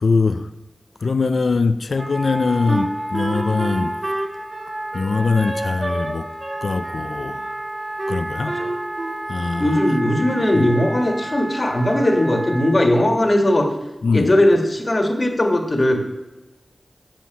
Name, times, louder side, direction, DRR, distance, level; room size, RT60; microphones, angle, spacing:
voice 1, 0.0-0.5 1.0-3.9 4.9-6.2 6.6-7.4 8.1-8.5 9.3-9.8 14.0-14.3, left 4 dB, 80° left, 0.3 m, -21 dB
Wind instrument woodwind instrument, 1.9-12.8, right 1 dB, 30° right, 1.3 m, -31 dB
Wind instrument woodwind instrument 2, 2.7-6.1 6.4-7.5 8.0-9.3 9.6-10.1, right 1 dB, 50° right, 1.5 m, -28 dB
voice 2, 9.6-13.7 14.1-16.0, left 1 dB, 45° left, 1.6 m, -18 dB
7.6 x 5.7 x 6.9 m
cardioid pair, 50°, 0 cm